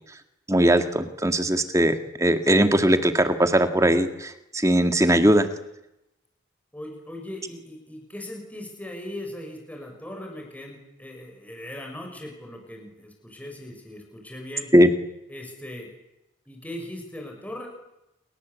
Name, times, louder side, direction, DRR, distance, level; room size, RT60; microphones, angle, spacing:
voice 1, 0.5-5.5 14.7-14.9, right 1 dB, 15° right, 8 dB, 2.1 m, -20 dB
voice 2, 6.7-14.7 15.3-15.9 16.5-17.7, left 1 dB, 5° left, 1 dB, 6.4 m, -39 dB
28.0 x 24.0 x 8.4 m, 0.89 s
head